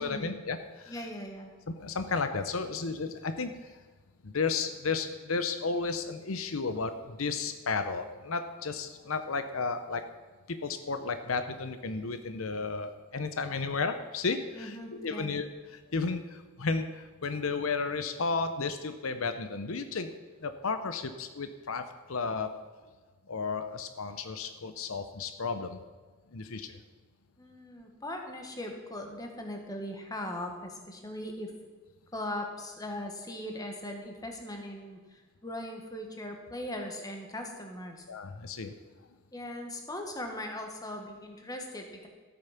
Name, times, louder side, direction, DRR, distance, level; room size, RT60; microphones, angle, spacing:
voice 1, 0.0-1.0 1.7-3.7 4.2-10.1 10.5-20.1 20.4-22.5 23.3-25.8 26.3-26.8 38.1-38.8, left 4 dB, 75° left, 9 dB, 0.8 m, -33 dB
voice 2, 0.9-1.5 14.6-15.4 27.4-31.5 32.1-38.1 39.3-42.1, left 1 dB, 15° left, 2 dB, 1.6 m, -39 dB
14.0 x 8.7 x 5.9 m, 1.4 s
head